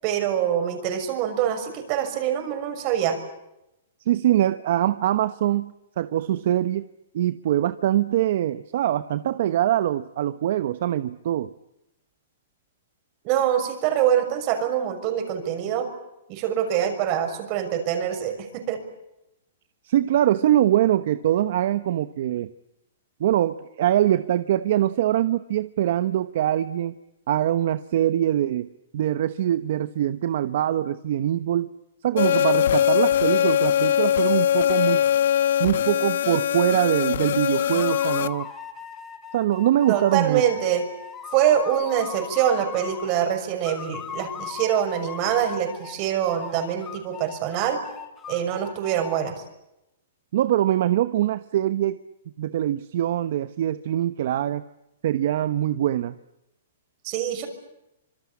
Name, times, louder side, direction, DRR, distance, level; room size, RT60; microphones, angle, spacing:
voice 1, 0.0-3.2 13.2-15.9 16.3-18.8 39.9-40.8 41.3-47.8 48.3-49.3 57.0-57.5, right 10 dB, 35° right, 7 dB, 6.3 m, -24 dB
voice 2, 4.1-6.9 7.1-11.5 19.8-22.5 23.2-27.0 27.3-31.7 32.0-35.0 35.6-38.5 39.3-40.4 50.3-52.0 52.4-54.6 55.0-56.1, right 12 dB, 60° right, 12 dB, 1.0 m, -23 dB
sound 1, 32.2-38.3, left 10 dB, 70° left, 1.0 m, -21 dB
sound 2, 37.6-43.2 43.6-46.0 46.3-49.2, left 8 dB, 20° left, 3.7 m, -38 dB
26.5 x 24.0 x 8.6 m, 0.87 s
hypercardioid pair, 150°, 0 cm